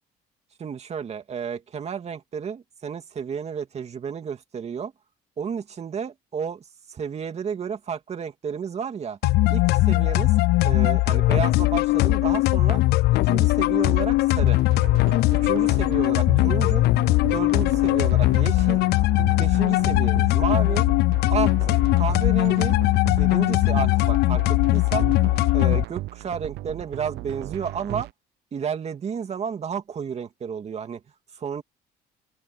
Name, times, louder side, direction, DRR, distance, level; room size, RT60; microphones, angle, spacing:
voice 1, 0.6-4.9 5.4-6.6 6.9-9.2 9.5-10.3 10.6-12.8 13.2-14.6 15.4-16.9 17.3-18.8 19.4-20.9 21.3-22.8 23.2-25.1 25.5-28.1 28.5-31.0 31.3-31.6, right 7 dB, 40° right, 2.5 m, -31 dB
sound 1, 9.2-25.8, left 19 dB, 75° left, 0.5 m, -20 dB
sound 2, 14.3-28.1, right 17 dB, 80° right, 0.7 m, -36 dB
open air
cardioid pair, 110°, 17 cm